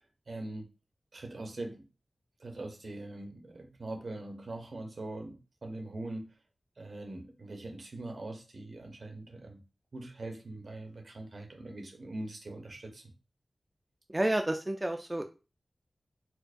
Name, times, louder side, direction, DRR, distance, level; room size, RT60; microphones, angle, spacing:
voice 1, 0.3-0.7 1.1-1.9 2.4-6.3 6.8-9.6 9.9-13.1, right 2 dB, 60° right, 0.8 m, -42 dB
voice 2, 14.1-15.3, right 1 dB, 20° right, 0.3 m, -30 dB
4.4 x 2.1 x 2.5 m
wide cardioid pair, 90°, 0 cm